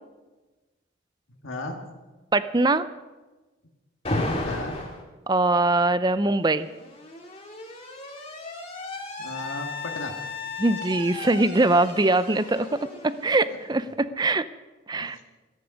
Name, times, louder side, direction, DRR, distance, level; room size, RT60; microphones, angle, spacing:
voice 1, 1.4-1.8 4.4-4.8 9.2-10.2 15.0-15.2, left 2 dB, 85° left, 2 dB, 1.9 m, -35 dB
voice 2, 2.3-2.9 5.3-6.7 10.6-14.5 14.9-15.2, right 2 dB, 20° right, 14 dB, 0.5 m, -22 dB
Alarm, 4.0-5.0 6.2-13.9, left 2 dB, 30° left, 2.1 m, -34 dB
14.0 x 14.0 x 5.2 m, 1.2 s
head